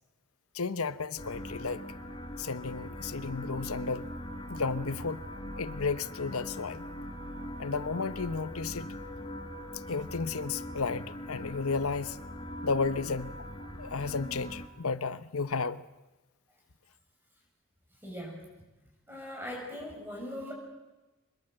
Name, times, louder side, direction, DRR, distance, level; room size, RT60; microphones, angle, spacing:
voice 1, 0.5-1.8 2.4-4.1 4.5-5.2 5.6-6.8 7.6-8.9 9.9-12.2 12.6-13.4 13.8-15.8, left 4 dB, 80° left, 14 dB, 0.9 m, -33 dB
sound 1, 1.2-14.7, equal, 25° left, 1.9 m, -41 dB
voice 2, 18.0-18.4 19.1-20.5, left 1 dB, 10° right, -1 dB, 6.9 m, -40 dB
24.5 x 21.5 x 7.8 m, 1.1 s
head